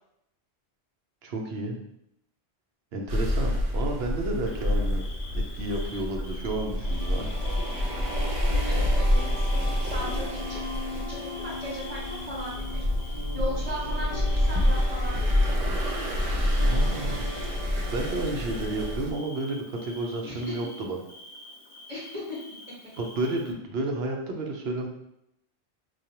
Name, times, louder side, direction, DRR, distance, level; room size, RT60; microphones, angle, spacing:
voice 1, 1.2-1.8 2.9-5.0 5.3-7.3 16.6-17.2 17.9-21.0 23.0-24.9, right 2 dB, 70° right, 2 dB, 0.9 m, -31 dB
sound 1, 3.1-19.1, left 1 dB, 45° right, 0.7 m, -27 dB
Bird / Cricket, 4.5-23.5, left 2 dB, 75° left, 0.8 m, -47 dB
sound 2, 6.8-19.0, left 1 dB, 45° left, 0.5 m, -40 dB
voice 2, 8.6-10.6 10.9-15.6 20.2-20.5 21.9-22.4, equal, 10° right, -6 dB, 1.0 m, -38 dB
4.7 x 2.4 x 2.8 m, 0.80 s
omnidirectional pair, 1.1 m